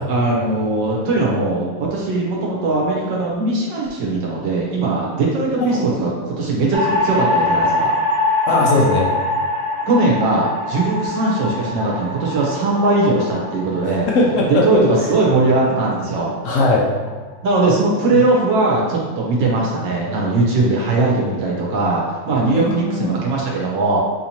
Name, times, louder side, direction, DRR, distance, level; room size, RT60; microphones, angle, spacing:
voice 1, 0.1-8.0 9.9-14.1 14.5-16.3 17.4-24.0, right 2 dB, 70° right, -3 dB, 1.5 m, -19 dB
sound 1, 6.7-17.0, left 2 dB, 45° right, 1.1 m, -23 dB
voice 2, 8.5-9.1 14.1-14.8 16.4-16.9 18.1-18.2 22.5-23.2, left 2 dB, 90° left, -2 dB, 0.6 m, -18 dB
6.4 x 2.9 x 2.8 m, 1.4 s
omnidirectional pair, 2.2 m